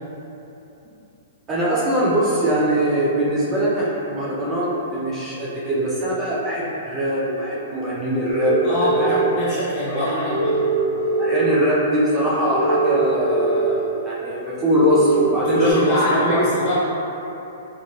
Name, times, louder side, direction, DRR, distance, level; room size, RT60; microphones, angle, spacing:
voice 1, 1.5-9.3 9.6-10.4 11.2-16.4, equal, 20° right, -7 dB, 0.4 m, -22 dB
sound 1, 8.3-9.2 10.3-11.4 12.5-13.7 14.7-15.7, right 2 dB, 55° right, 0.8 m, -22 dB
voice 2, 8.6-10.5 15.4-16.7, equal, 35° left, -11 dB, 1.3 m, -24 dB
3.0 x 2.2 x 2.6 m, 3.0 s
hypercardioid pair, 130°, 0 cm